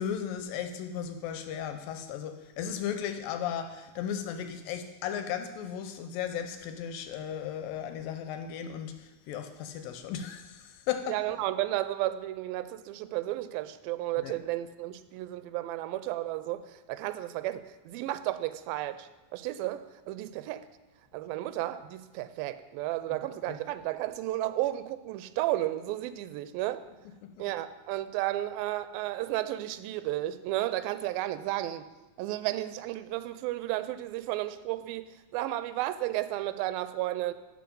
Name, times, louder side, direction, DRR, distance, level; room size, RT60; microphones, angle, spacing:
voice 1, 0.0-11.2 14.2-14.3 23.5-23.6 27.2-27.3, left 9 dB, 80° left, 7 dB, 2.3 m, -35 dB
voice 2, 11.1-20.7 21.1-26.9 27.4-31.9 32.2-37.3, right 15 dB, 85° right, 13 dB, 2.3 m, -33 dB
12.0 x 5.0 x 5.3 m, 1.2 s
omnidirectional pair, 4.2 m